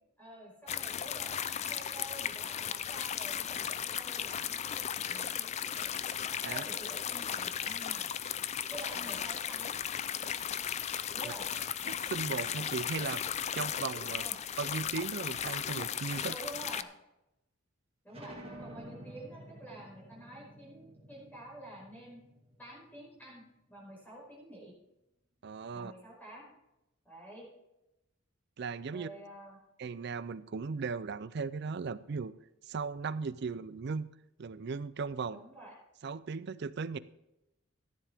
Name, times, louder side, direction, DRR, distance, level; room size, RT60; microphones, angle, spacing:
voice 1, 0.2-5.9 6.5-8.1 8.7-9.8 11.1-11.4 14.1-14.3 16.2-16.9 18.0-22.2 22.6-23.4 23.7-24.7 25.7-26.4 27.0-27.5 28.9-29.6 35.3-35.7, right 1 dB, 10° left, -4 dB, 4.7 m, -49 dB
sound 1, 0.7-16.8, left 9 dB, 35° left, 0.4 m, -36 dB
voice 2, 11.9-14.2 14.6-16.3 25.4-25.9 28.6-29.1 29.8-32.3 32.7-34.1 34.4-35.4 36.0-37.0, right 5 dB, 55° right, 16 dB, 0.4 m, -37 dB
sound 2, 18.1-23.4, right 1 dB, 30° right, 1.9 m, -51 dB
13.5 x 10.0 x 3.5 m, 0.91 s
head